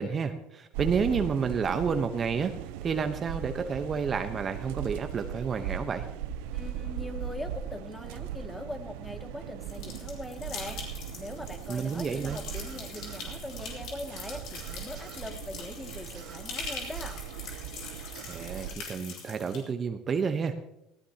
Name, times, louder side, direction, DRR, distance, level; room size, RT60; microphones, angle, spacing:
voice 1, 0.0-2.5 2.8-6.1 11.7-12.4 18.3-20.5, right 6 dB, 35° right, 7 dB, 1.0 m, -30 dB
sound 1, 0.7-18.8, right 9 dB, 75° right, 0.7 m, -39 dB
voice 2, 6.5-10.8 11.1-17.2, left 1 dB, 10° left, 5 dB, 2.3 m, -41 dB
sound 2, 9.7-19.6, left 5 dB, 60° left, 3.9 m, -43 dB
sound 3, 12.2-13.2 14.2-15.2 16.1-17.2 18.1-18.4, right 8 dB, 55° right, 1.8 m, -51 dB
18.5 x 16.0 x 2.9 m, 0.84 s
hypercardioid pair, 80°, 0 cm